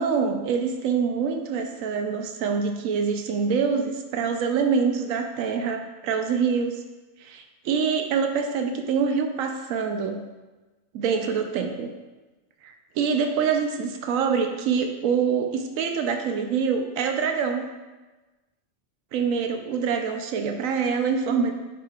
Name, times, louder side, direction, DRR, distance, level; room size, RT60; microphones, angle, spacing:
voice 1, 0.0-6.8 7.2-10.3 10.9-11.9 12.6-17.7 19.1-21.5, right 6 dB, 85° right, 5 dB, 1.0 m, -25 dB
11.0 x 5.1 x 2.3 m, 1.2 s
omnidirectional pair, 1.4 m